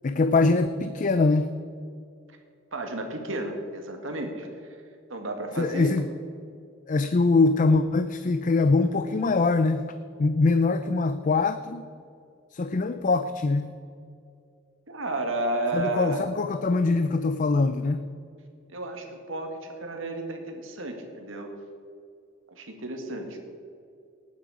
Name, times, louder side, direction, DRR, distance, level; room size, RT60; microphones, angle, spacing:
voice 1, 0.0-1.5 5.6-6.1 6.9-9.9 10.2-11.9 12.5-13.7 15.7-18.1, left 3 dB, 40° left, 10 dB, 0.4 m, -23 dB
voice 2, 2.7-4.5 5.1-5.9 14.9-16.2 18.7-21.5 22.5-23.4, right 2 dB, 80° right, 4 dB, 1.9 m, -32 dB
19.0 x 9.4 x 4.9 m, 2.4 s
head